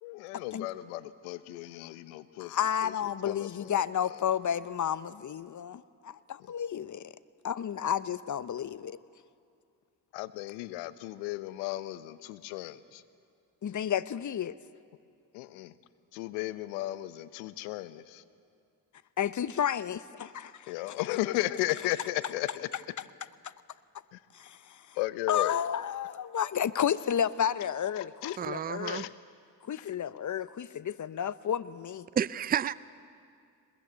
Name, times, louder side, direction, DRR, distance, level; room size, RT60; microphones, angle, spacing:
voice 1, 0.0-2.9 3.2-3.8 10.1-13.0 15.3-15.7 16.1-18.2 20.7-22.7 24.1-24.2 25.0-25.6 28.0-28.4 28.9-29.1, left 16 dB, 85° left, 14 dB, 0.9 m, -35 dB
voice 2, 2.4-7.1 7.4-9.0 13.6-14.5 19.2-21.0 23.4-23.5 24.3-24.8 25.3-29.1 29.6-32.1, left 9 dB, 40° left, 16 dB, 0.9 m, -31 dB
voice 3, 28.4-29.1 32.1-32.7, right 8 dB, 20° right, 18 dB, 0.5 m, -30 dB
22.5 x 21.5 x 8.1 m, 2.3 s
hypercardioid pair, 50°, 48 cm